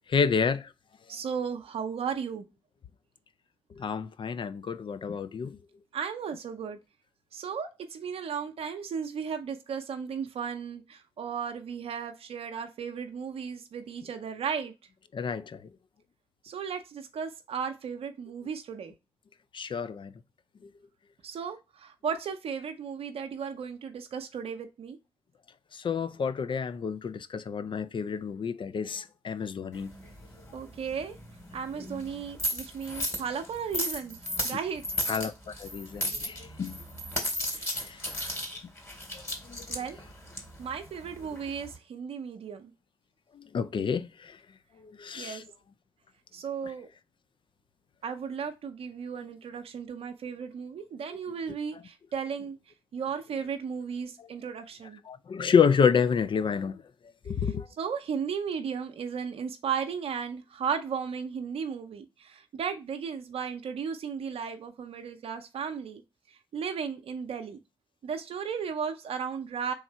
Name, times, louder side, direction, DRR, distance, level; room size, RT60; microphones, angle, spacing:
voice 1, 0.1-0.7 3.8-5.6 15.1-15.7 19.5-20.1 20.6-20.7 25.7-29.9 35.1-36.8 37.6-38.0 39.4-39.7 43.3-44.4 44.8-45.4 51.7-51.8 54.2-54.3 55.1-56.8 57.3-57.7, left 6 dB, 50° left, 0.4 m, -29 dB
voice 2, 1.1-2.5 5.9-6.8 7.3-14.7 16.4-18.9 21.2-25.0 30.5-31.2 31.5-35.0 37.5-38.0 39.7-40.0 40.6-42.7 45.1-45.4 46.3-46.9 48.0-52.6 52.9-55.0 57.8-66.0 66.3-67.6 68.0-69.7, right 6 dB, 70° right, 0.5 m, -35 dB
sound 1, 29.7-41.8, equal, 25° left, 2.1 m, -36 dB
3.6 x 3.1 x 4.4 m
supercardioid pair, 40°, 11 cm